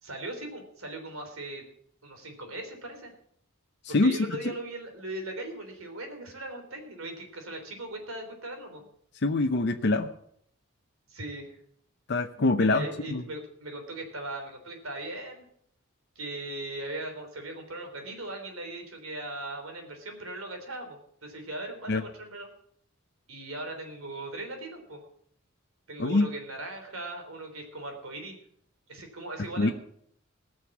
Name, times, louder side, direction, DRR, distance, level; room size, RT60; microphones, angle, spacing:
voice 1, 0.0-1.6 2.0-3.1 3.9-8.8 11.1-11.6 12.6-15.4 16.2-22.5 23.3-25.0 25.9-28.4 28.9-29.7, right 2 dB, 85° right, 4 dB, 3.5 m, -39 dB
voice 2, 9.2-10.1 12.1-13.2 21.9-22.0 26.0-26.3 29.6-29.7, left 2 dB, 55° left, 5 dB, 0.7 m, -24 dB
19.0 x 6.5 x 7.2 m, 0.68 s
head